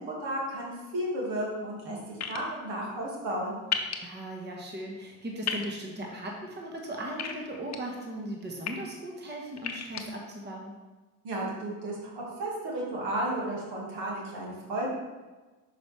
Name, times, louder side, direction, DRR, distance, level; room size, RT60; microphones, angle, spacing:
voice 1, 0.0-3.6 11.2-14.9, right 1 dB, 70° right, -3 dB, 2.0 m, -33 dB
sound 1, 2.2-2.4 3.7-4.0 5.4-5.7 7.2-7.8 8.4-8.7 9.6-10.0, left 7 dB, 40° left, 0.8 m, -31 dB
voice 2, 4.0-10.7, right 1 dB, 25° right, 0 dB, 1.2 m, -38 dB
6.1 x 5.0 x 3.2 m, 1.2 s
supercardioid pair, 70°, 41 cm